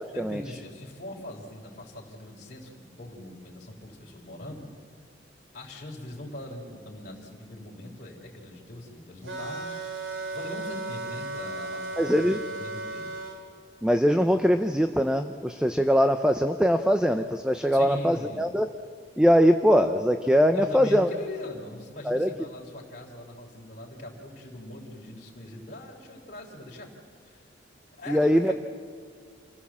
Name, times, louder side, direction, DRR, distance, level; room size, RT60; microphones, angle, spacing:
voice 1, 0.1-4.7 5.5-9.7 10.3-13.1 17.7-18.5 20.5-26.9 27.2-27.4 28.0-28.5, left 1 dB, 40° left, -4 dB, 3.5 m, -41 dB
sound 1, 9.3-13.4, right 2 dB, 85° right, 3.3 m, -35 dB
voice 2, 12.0-12.4 13.8-18.7 19.2-21.1 22.1-22.3 28.1-28.5, equal, 5° right, 7 dB, 0.6 m, -22 dB
27.5 x 16.0 x 7.4 m, 2.3 s
head